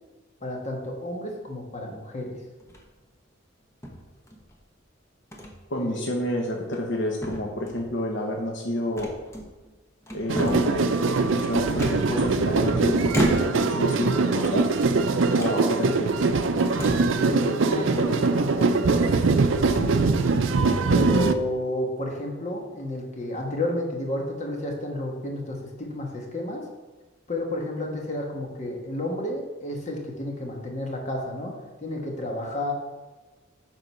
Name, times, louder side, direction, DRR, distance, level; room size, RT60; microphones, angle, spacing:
voice 1, 0.4-2.4 5.8-6.0 17.2-19.0 19.6-20.1 20.9-26.6 27.3-31.5 31.8-32.7, left 1 dB, 35° left, 0 dB, 1.3 m, -31 dB
sound 1, 2.6-3.0 3.8-4.6 5.3-5.6 6.0-6.1 6.6-7.0 7.2-7.9 9.0-9.7 10.0-10.8 11.8-12.6 13.1-13.8 14.3-15.0 15.4-15.6 16.2-16.3 16.7-17.2, equal, 15° left, 1.0 m, -33 dB
voice 2, 5.7-9.1 10.1-14.7 15.3-16.2, left 1 dB, 60° left, 0 dB, 1.0 m, -29 dB
sound 2, 10.3-21.3, right 3 dB, 70° right, 0.5 m, -22 dB
9.1 x 3.9 x 5.5 m, 1.2 s
head